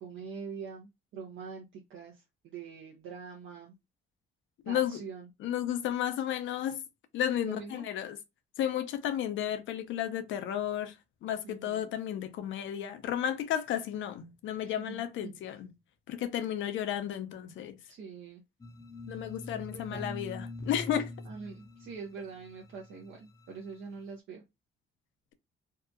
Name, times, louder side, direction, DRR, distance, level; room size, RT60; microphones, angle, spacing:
voice 1, 0.0-3.8 4.7-5.3 7.4-7.8 11.4-11.9 14.6-15.0 17.9-18.4 19.7-20.1 21.2-24.4, right 5 dB, 75° right, 0.6 m, -44 dB
voice 2, 4.6-5.0 5.4-6.8 7.1-8.2 8.6-15.7 16.1-17.8 19.1-21.1, left 10 dB, 75° left, 0.5 m, -33 dB
sound 1, 18.6-23.8, left 2 dB, 15° left, 0.5 m, -44 dB
2.7 x 2.2 x 2.4 m
cardioid pair, 90°, 20 cm